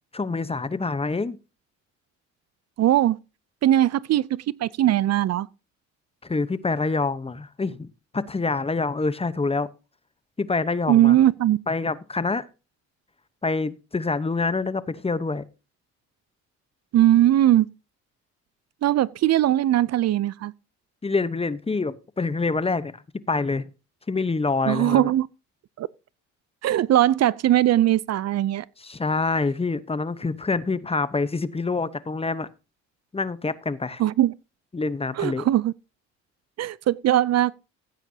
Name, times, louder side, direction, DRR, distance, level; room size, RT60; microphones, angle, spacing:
voice 1, 0.1-1.4 6.2-9.7 10.4-11.2 11.7-12.5 13.4-15.4 21.0-22.9 23.3-23.7 24.1-25.1 28.8-32.5 33.1-34.0 34.7-35.5, left 3 dB, 20° left, 0.9 m, -26 dB
voice 2, 2.8-3.2 3.6-5.5 10.9-11.6 16.9-17.7 18.8-20.5 24.7-25.3 25.8-25.9 26.6-28.6 34.0-34.3 35.2-35.7 36.6-37.5, right 13 dB, 60° right, 0.5 m, -20 dB
15.5 x 9.0 x 2.8 m
cardioid pair, 90°, 30 cm